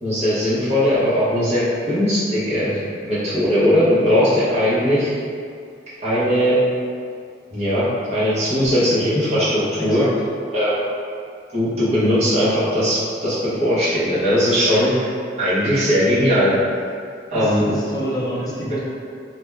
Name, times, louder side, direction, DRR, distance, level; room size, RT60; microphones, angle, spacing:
voice 1, 0.0-5.1 6.0-6.6 7.5-10.0 10.5-10.8 11.5-15.1 15.4-16.5 17.3-17.6, equal, 35° right, -13 dB, 1.0 m, -19 dB
voice 2, 9.8-10.1 17.3-18.8, equal, 20° left, -8 dB, 0.5 m, -27 dB
2.6 x 2.2 x 3.3 m, 2.3 s
head